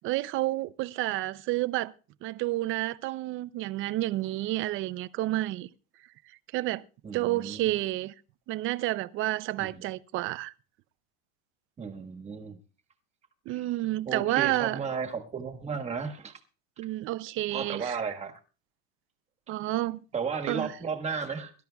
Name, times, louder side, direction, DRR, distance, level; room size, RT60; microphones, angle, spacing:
voice 1, 0.0-1.9 2.2-5.7 6.5-6.8 7.1-8.1 8.5-10.5 13.5-14.8 16.8-18.0 19.5-20.0 20.5-20.7, right 17 dB, 40° right, 0.5 m, -30 dB
voice 2, 7.0-7.7 9.6-9.8 11.8-12.6 13.5-13.7 14.0-16.4 17.5-18.4 20.1-21.5, right 5 dB, 20° right, 1.4 m, -34 dB
23.0 x 12.0 x 2.3 m
supercardioid pair, 145°, 33 cm